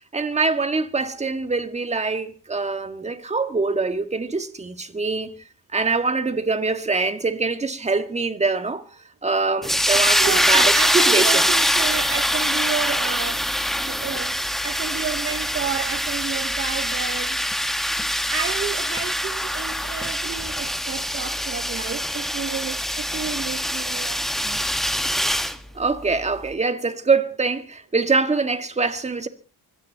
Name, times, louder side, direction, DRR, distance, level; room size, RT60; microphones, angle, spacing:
voice 1, 0.1-5.4 5.7-8.9 9.2-11.4 25.7-29.3, right 4 dB, 15° right, 1.7 m, -24 dB
sound 1, 9.6-25.6, equal, ahead, 1.3 m, -23 dB
voice 2, 10.0-17.4 17.8-24.6, right 7 dB, 35° right, 1.0 m, -31 dB
24.5 x 18.0 x 2.9 m
cardioid pair, 125°, 38 cm